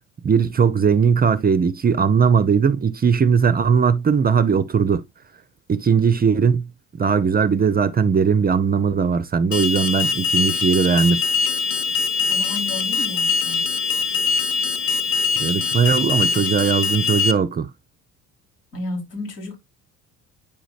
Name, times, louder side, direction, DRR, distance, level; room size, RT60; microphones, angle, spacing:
voice 1, 0.2-5.0 5.7-6.7 7.0-11.2 15.4-17.7, right 6 dB, 20° right, 0.5 m, -19 dB
Alarm, 9.5-17.3, left 5 dB, 55° left, 1.0 m, -22 dB
voice 2, 12.3-13.7 18.7-19.6, left 2 dB, 85° left, 2.6 m, -32 dB
8.9 x 5.0 x 2.4 m
figure-of-eight pair, 60°, 47 cm